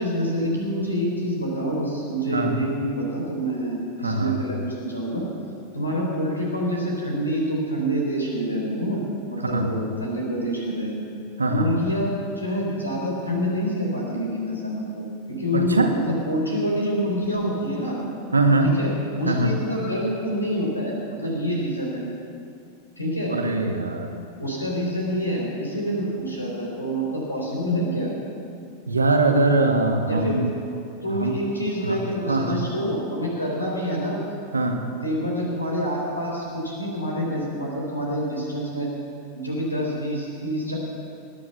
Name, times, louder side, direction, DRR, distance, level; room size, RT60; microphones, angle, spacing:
voice 1, 0.0-5.3 5.7-9.0 9.3-11.0 11.5-18.0 18.8-18.9 19.2-22.0 23.0-23.3 24.4-28.1 30.1-30.4 31.0-34.2 35.0-38.9 39.3-40.8, equal, 80° left, -2 dB, 4.2 m, -27 dB
voice 2, 4.0-4.4 9.4-9.7 11.4-11.7 15.5-15.9 18.3-18.7 19.2-19.6 23.3-24.1 28.9-30.5 31.1-31.4 31.8-32.0 32.2-32.6 34.5-34.8, right 2 dB, 80° right, 3 dB, 1.7 m, -22 dB
19.5 x 9.7 x 7.0 m, 2.6 s
figure-of-eight pair, 90°, 0 cm